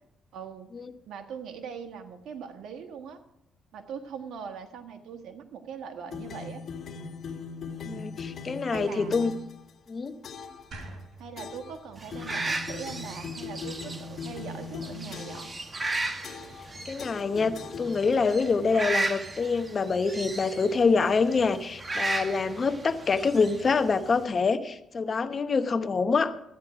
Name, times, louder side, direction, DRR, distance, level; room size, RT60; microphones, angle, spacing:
voice 1, 0.3-0.7 1.1-3.2 3.7-6.6 8.7-9.2 11.2-15.5, right 7 dB, 80° right, 6 dB, 1.4 m, -41 dB
sound 1, 6.1-9.5 10.2-10.6 11.4-11.8 12.1-15.6 16.2-16.7 17.0-18.3, left 5 dB, 55° left, 1.8 m, -39 dB
voice 2, 7.8-9.3 9.9-10.1 16.8-26.3, left 4 dB, 40° left, 10 dB, 0.9 m, -26 dB
sound 2, 10.7-13.9, right 1 dB, 55° right, 2.8 m, -48 dB
sound 3, 12.0-24.3, right 2 dB, 25° right, 1.2 m, -36 dB
13.5 x 9.6 x 4.9 m, 0.82 s
cardioid pair, 90°, 0 cm